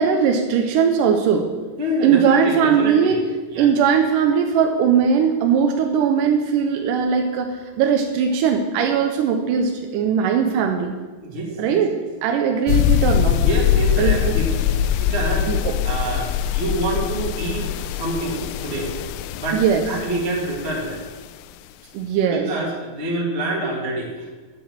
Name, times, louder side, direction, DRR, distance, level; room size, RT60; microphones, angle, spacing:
voice 1, 0.0-1.5 2.0-3.2 3.6-10.9 11.6-11.9 12.2-13.4 14.0-14.2 15.5-15.8 19.5-19.8 21.9-22.5, right 7 dB, 75° right, 3 dB, 2.1 m, -19 dB
voice 2, 1.8-3.2 3.5-3.7 11.2-11.8 13.4-14.7 14.9-18.9 19.4-21.0 22.3-24.3, right 1 dB, 25° right, -2 dB, 1.6 m, -26 dB
sound 1, 12.7-21.1, left 10 dB, 90° left, 2.4 m, -22 dB
9.1 x 8.5 x 7.3 m, 1.4 s
omnidirectional pair, 4.2 m